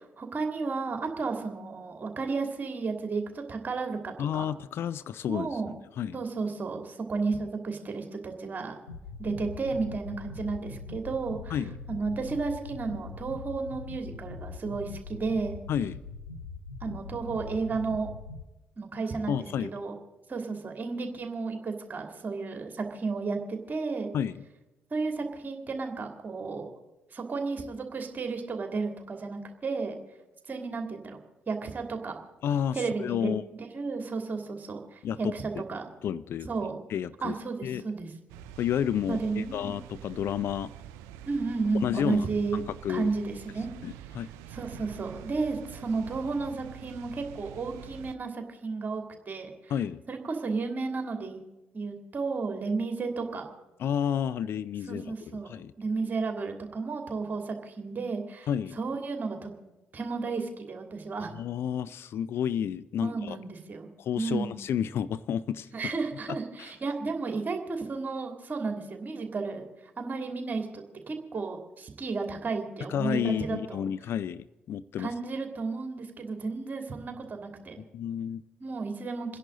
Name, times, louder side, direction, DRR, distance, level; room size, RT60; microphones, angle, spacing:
voice 1, 0.0-4.4 5.3-5.7 6.1-8.8 9.2-11.6 11.9-15.6 16.8-18.1 18.8-19.9 20.3-24.1 24.9-26.7 27.1-29.9 30.5-31.2 31.5-32.2 32.7-33.3 33.7-35.8 36.4-36.8 37.2-38.1 39.1-39.7 41.3-42.6 42.9-43.7 44.5-49.7 50.1-51.4 51.7-53.5 54.9-55.5 55.8-58.5 58.8-59.5 59.9-61.3 63.0-63.9 64.2-64.6 65.7-73.8 75.0-77.8 78.6-79.4, right 4 dB, 35° right, 4 dB, 2.7 m, -33 dB
voice 2, 4.2-5.6 6.0-6.2 11.5-11.8 15.7-16.0 19.3-19.7 24.1-24.4 32.4-33.4 35.0-35.3 36.0-37.4 37.6-37.8 38.6-40.7 41.8-42.3 42.5-43.1 43.8-44.3 49.7-50.0 53.8-55.0 55.4-55.7 58.5-58.8 61.4-63.4 64.0-65.7 66.3-66.4 72.9-75.1 77.8-78.4, left 9 dB, 50° left, 16 dB, 0.4 m, -31 dB
sound 1, 8.9-18.4, left 3 dB, 85° left, 0.7 m, -42 dB
sound 2, 38.3-48.2, right 10 dB, 65° right, 0.5 m, -46 dB
28.5 x 10.5 x 3.9 m, 1.1 s
figure-of-eight pair, 45°, 5 cm